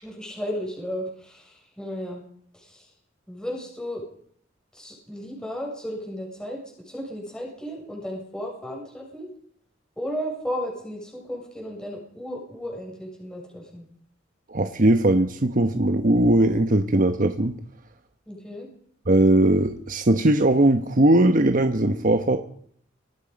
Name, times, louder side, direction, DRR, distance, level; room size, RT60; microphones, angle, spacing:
voice 1, 0.0-2.2 2.6-2.8 3.3-4.0 4.7-6.6 6.9-9.3 10.0-13.8 18.3-18.7, equal, 5° left, -1 dB, 6.8 m, -34 dB
voice 2, 14.5-17.6 19.1-22.4, right 1 dB, 45° right, 6 dB, 1.2 m, -19 dB
26.5 x 18.5 x 5.3 m, 0.63 s
head